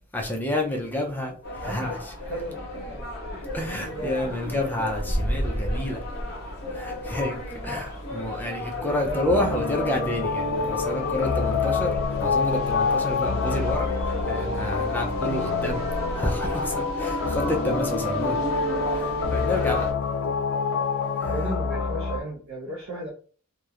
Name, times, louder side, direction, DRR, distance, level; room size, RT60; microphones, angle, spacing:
voice 1, 0.1-2.1 3.5-6.0 6.7-7.3 7.6-15.8 16.1-18.4 18.9-19.9 21.2-21.3, left 1 dB, 10° left, 0.4 m, -29 dB
sound 1, 1.4-19.9, left 1 dB, 50° left, 0.9 m, -33 dB
voice 2, 1.6-2.0 2.3-2.5 2.9-3.4 3.8-4.2 8.8-9.2 21.3-23.1, equal, 65° right, 0.6 m, -35 dB
sound 2, 9.3-22.2, left 4 dB, 80° left, 0.4 m, -27 dB
2.9 x 2.0 x 2.3 m
head